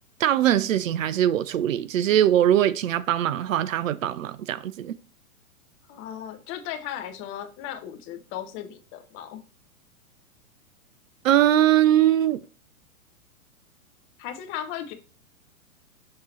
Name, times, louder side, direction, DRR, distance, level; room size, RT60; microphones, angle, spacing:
voice 1, 0.2-5.0 11.2-12.4, right 11 dB, 65° right, 0.6 m, -21 dB
voice 2, 5.9-9.4 14.2-14.9, left 10 dB, 30° left, 0.8 m, -36 dB
6.6 x 3.8 x 4.3 m
hypercardioid pair, 115°, 43 cm